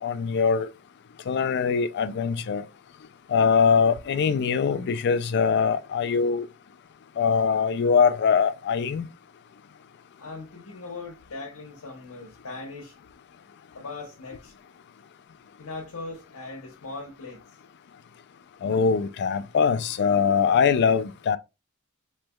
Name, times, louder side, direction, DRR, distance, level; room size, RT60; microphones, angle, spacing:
voice 1, 0.0-0.7 1.3-2.6 3.3-6.5 7.2-9.1 18.6-21.4, left 6 dB, 50° left, 0.3 m, -22 dB
voice 2, 10.2-13.0 13.7-14.6 15.6-17.4, left 3 dB, 85° left, 0.8 m, -39 dB
3.2 x 3.0 x 2.2 m
head